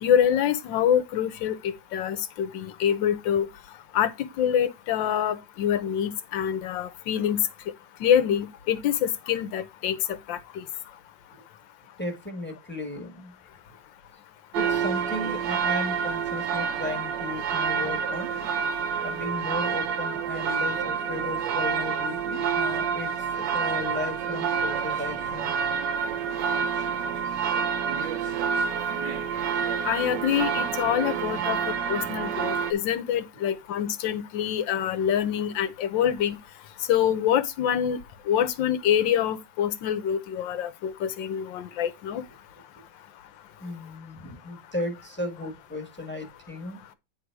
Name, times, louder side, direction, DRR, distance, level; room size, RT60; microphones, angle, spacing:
voice 1, 0.0-3.5 3.9-7.5 8.0-10.6 29.8-31.6 31.9-36.4 36.9-38.0 38.3-42.2, left 9 dB, 75° left, 1.5 m, -25 dB
voice 2, 12.0-13.3 14.5-18.3 19.0-25.5 31.3-31.5 43.6-46.9, left 2 dB, 5° left, 1.3 m, -35 dB
sound 1, 14.5-32.7, right 6 dB, 75° right, 1.4 m, -28 dB
9.5 x 3.9 x 4.6 m
omnidirectional pair, 2.1 m